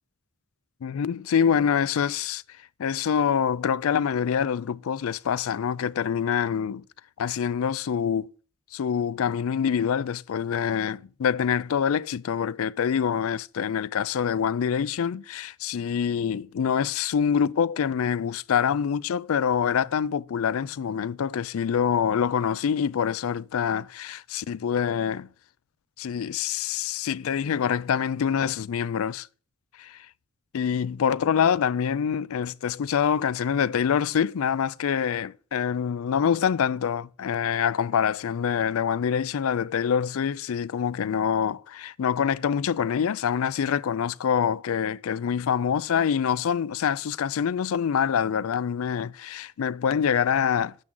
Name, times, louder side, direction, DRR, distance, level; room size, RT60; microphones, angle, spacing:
voice 1, 0.8-2.4 2.8-6.8 7.2-8.3 8.7-25.3 26.0-29.3 30.5-50.8, left 7 dB, 75° left, 0.4 m, -25 dB
12.0 x 7.6 x 3.8 m
head